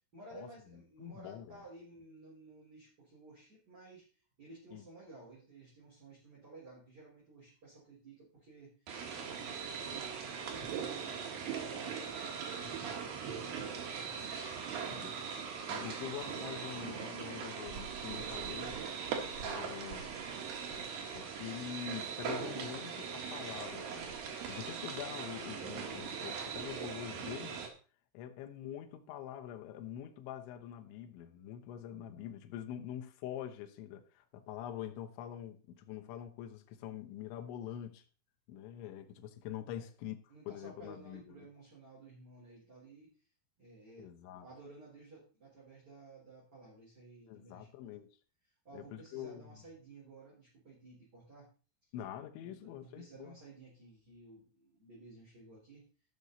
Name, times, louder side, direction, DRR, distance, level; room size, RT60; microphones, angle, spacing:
voice 1, 0.1-4.0 4.4-8.7 9.2-11.2 11.6-15.3 39.7-39.9 40.3-43.1 43.6-44.1 44.4-47.7 48.6-51.5 52.4-55.9, right 3 dB, 20° right, 3.9 m, -55 dB
voice 2, 1.0-1.6 4.7-4.8 15.0-15.2 15.7-18.8 19.3-20.2 21.1-24.1 24.5-27.6 28.1-38.0 38.5-40.2 40.5-41.2 44.0-44.5 47.3-48.2 48.7-49.6 51.9-53.4, left 10 dB, 75° left, 3.2 m, -45 dB
sound 1, 8.9-27.7, right 6 dB, 60° right, 2.6 m, -40 dB
14.5 x 6.2 x 4.0 m
omnidirectional pair, 5.7 m